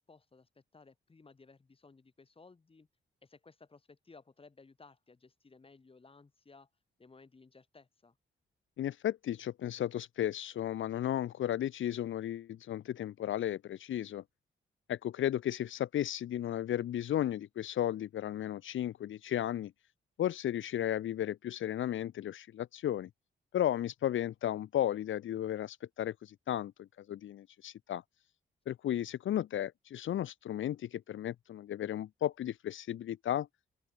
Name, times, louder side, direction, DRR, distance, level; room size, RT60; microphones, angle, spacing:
voice 1, 0.0-2.9 3.2-6.7 7.0-8.2, left 4 dB, 30° left, 5.5 m, -59 dB
voice 2, 8.8-14.2 14.9-19.7 20.2-23.1 23.5-28.0 28.7-33.5, left 11 dB, 80° left, 0.8 m, -34 dB
open air
wide cardioid pair, 130°, 20 cm